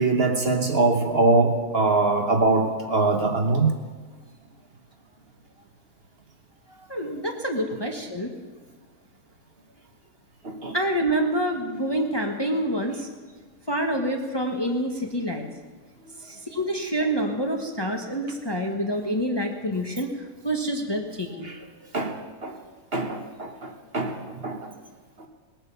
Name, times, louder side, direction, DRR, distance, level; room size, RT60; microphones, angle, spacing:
voice 1, 0.0-3.7 10.4-10.7 21.4-21.6 21.9-22.1 22.4-22.5 22.9-24.1 24.4-24.7, right 3 dB, 45° right, 3 dB, 1.3 m, -22 dB
voice 2, 6.9-8.3 10.7-13.1 13.7-15.5 16.2-20.1 20.4-21.5, right 1 dB, 20° left, 2 dB, 1.1 m, -27 dB
19.5 x 9.3 x 6.9 m, 1.4 s
omnidirectional pair, 1.6 m